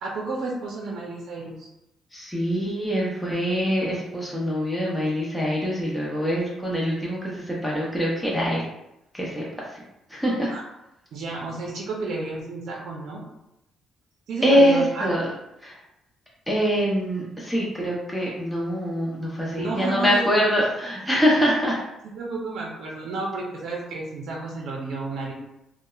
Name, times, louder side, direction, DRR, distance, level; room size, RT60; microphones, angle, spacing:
voice 1, 0.0-1.7 10.5-10.6 11.1-13.2 14.3-15.2 19.5-20.4 22.2-25.3, right 3 dB, 70° right, -2 dB, 0.5 m, -31 dB
voice 2, 2.1-8.6 9.1-9.4 9.7-9.8 10.1-10.5 14.4-15.3 15.6-15.8 16.5-21.8, equal, 5° left, -5 dB, 0.6 m, -24 dB
2.6 x 2.1 x 2.3 m, 0.86 s
cardioid pair, 90°, 0 cm